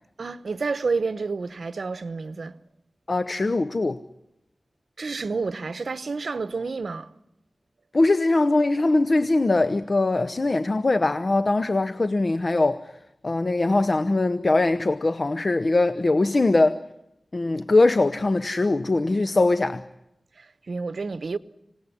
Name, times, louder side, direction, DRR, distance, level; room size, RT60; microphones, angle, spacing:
voice 1, 0.2-2.6 5.0-7.1 20.4-21.4, right 4 dB, 90° right, 0.9 m, -29 dB
voice 2, 3.1-4.0 7.9-12.9 13.2-16.8 17.3-19.8, left 2 dB, 55° left, 0.8 m, -21 dB
26.0 x 18.5 x 9.9 m
wide cardioid pair, 55°, 0 cm